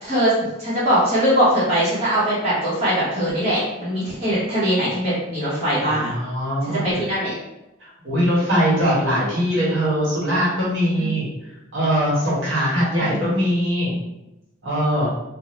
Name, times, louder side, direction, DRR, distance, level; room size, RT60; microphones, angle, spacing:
voice 1, 0.0-6.1 6.7-7.3 8.0-8.1 11.0-11.1 13.0-13.3, equal, 30° right, -10 dB, 1.1 m, -21 dB
voice 2, 5.9-6.9 7.8-11.3 11.7-13.9 14.6-15.1, equal, 70° right, -7 dB, 1.3 m, -21 dB
2.5 x 2.3 x 3.1 m, 0.93 s
head